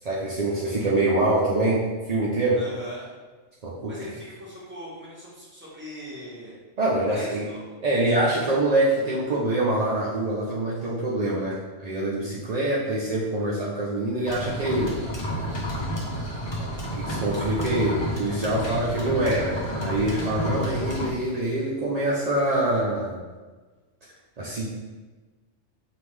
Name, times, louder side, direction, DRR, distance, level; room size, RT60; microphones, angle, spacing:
voice 1, 0.0-2.6 3.6-4.0 6.8-7.4 7.8-15.0 16.9-23.2 24.4-24.7, right 1 dB, 55° right, -6 dB, 0.4 m, -25 dB
voice 2, 2.6-3.1 3.9-6.6 7.1-7.7 8.4-8.5 18.4-19.0, equal, 10° right, -7 dB, 1.3 m, -40 dB
sound 1, 14.2-21.1, equal, 25° left, 0.7 m, -30 dB
5.1 x 2.6 x 3.2 m, 1.3 s
omnidirectional pair, 1.4 m